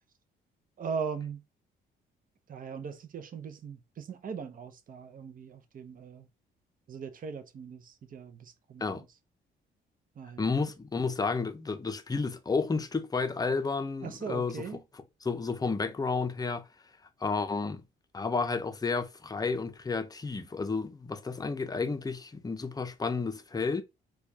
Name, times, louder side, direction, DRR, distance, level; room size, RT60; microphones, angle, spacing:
voice 1, 0.8-1.4 2.5-6.3 6.9-9.1 10.2-10.5 14.0-14.8, right 6 dB, 45° right, 0.6 m, -39 dB
voice 2, 10.4-14.6 15.2-16.7 17.2-17.8 18.1-23.8, left 4 dB, 20° left, 0.6 m, -31 dB
4.4 x 2.3 x 2.7 m
cardioid pair, 90°, 20 cm